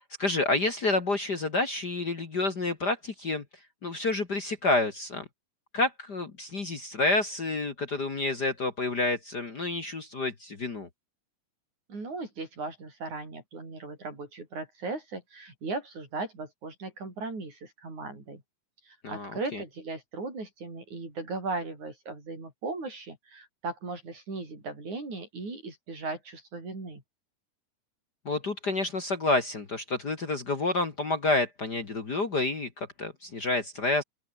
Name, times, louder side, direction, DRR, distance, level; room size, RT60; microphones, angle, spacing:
voice 1, 0.2-3.4 3.8-5.2 5.7-10.9 19.0-19.6 28.3-34.0, left 2 dB, 35° left, 2.3 m, -29 dB
voice 2, 11.9-18.4 18.9-27.0, right 3 dB, 70° right, 9.4 m, -37 dB
open air
omnidirectional pair, 3.5 m